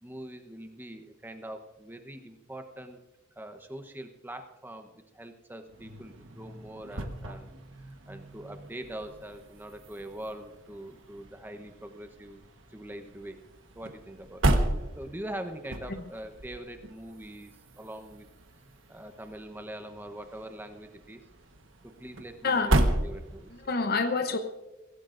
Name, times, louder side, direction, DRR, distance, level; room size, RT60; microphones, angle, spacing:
voice 1, 0.0-3.0 3.4-7.5 7.8-12.4 12.7-13.4 13.7-14.7 14.9-18.3 18.9-21.2 21.8-23.7, right 1 dB, 10° right, 1.0 m, -43 dB
sound 1, 5.7-23.8, right 1 dB, 75° right, 1.4 m, -34 dB
voice 2, 22.4-22.8 23.5-24.4, left 4 dB, 50° left, 0.9 m, -28 dB
24.5 x 16.0 x 2.6 m
head